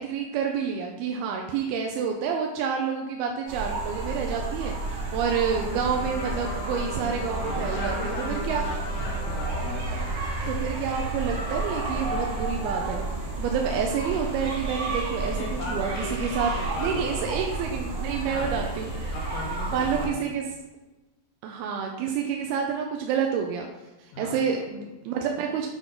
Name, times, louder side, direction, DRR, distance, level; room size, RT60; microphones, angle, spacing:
voice 1, 0.0-8.6 10.5-13.0 13.4-15.9 16.2-16.5 16.8-18.9 19.7-20.5 21.4-23.7 24.0-25.7, right 6 dB, 80° right, 2 dB, 2.4 m, -28 dB
sound 1, 3.5-20.1, right 2 dB, 60° right, 2.3 m, -31 dB
Trumpet, 5.9-10.4, left 3 dB, 65° left, 1.9 m, -39 dB
voice 2, 7.4-10.1 15.3-16.1 16.4-17.4 18.3-18.7 19.0-20.1 24.1-24.4, left 3 dB, 85° left, -1 dB, 1.9 m, -37 dB
8.1 x 3.8 x 3.8 m, 1.1 s
omnidirectional pair, 4.7 m